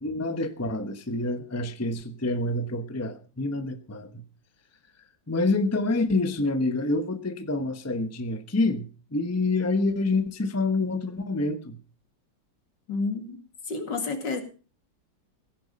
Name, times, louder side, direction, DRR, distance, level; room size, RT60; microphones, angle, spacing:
voice 1, 0.0-4.2 5.3-11.8, left 2 dB, 10° left, 9 dB, 0.8 m, -27 dB
voice 2, 12.9-13.4 13.7-14.4, left 3 dB, 65° left, 6 dB, 2.8 m, -30 dB
16.0 x 10.5 x 5.3 m, 0.36 s
omnidirectional pair, 2.0 m